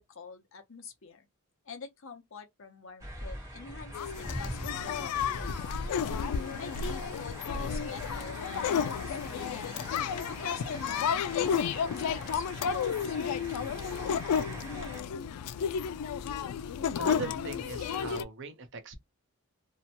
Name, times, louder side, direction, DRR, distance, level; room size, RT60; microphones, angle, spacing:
voice 1, 0.1-1.3 1.6-5.8 6.6-9.8 10.3-13.2, left 4 dB, 60° left, 0.7 m, -46 dB
sound 1, 3.0-15.0, equal, 15° right, 1.0 m, -43 dB
sound 2, 3.9-18.2, left 7 dB, 90° left, 0.3 m, -32 dB
voice 2, 17.0-18.9, right 4 dB, 55° right, 0.6 m, -40 dB
2.8 x 2.1 x 2.8 m
head